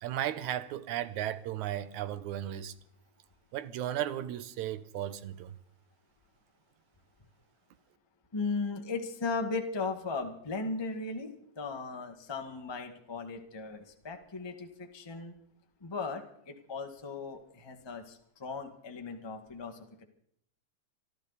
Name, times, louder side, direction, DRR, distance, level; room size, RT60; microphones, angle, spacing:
voice 1, 0.0-2.7 3.5-5.5, right 12 dB, 80° right, 2.2 m, -35 dB
voice 2, 8.3-11.3 11.5-15.3 15.8-19.8, left 4 dB, 15° left, 1.0 m, -37 dB
25.5 x 13.0 x 4.1 m
omnidirectional pair, 3.4 m